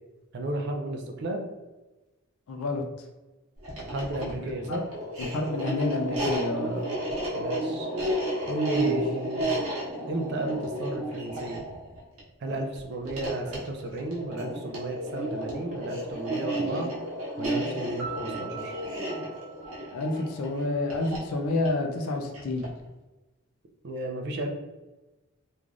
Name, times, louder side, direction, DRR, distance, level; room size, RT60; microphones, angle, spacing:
voice 1, 0.3-1.4 3.9-4.8 6.6-7.0 7.3-7.9 8.5-9.8 10.1-11.7 12.4-16.9 17.4-18.7 23.8-24.5, right 1 dB, 50° right, 2 dB, 0.4 m, -33 dB
voice 2, 2.5-2.8 4.4-4.8 5.2-6.7 8.8-9.0 19.9-22.6, left 2 dB, 85° left, 3 dB, 0.4 m, -29 dB
sound 1, 3.6-22.9, right 1 dB, 90° right, 1.0 m, -33 dB
Piano, 18.0-20.8, right 6 dB, 5° right, 0.8 m, -42 dB
3.1 x 2.5 x 2.4 m, 1.1 s
head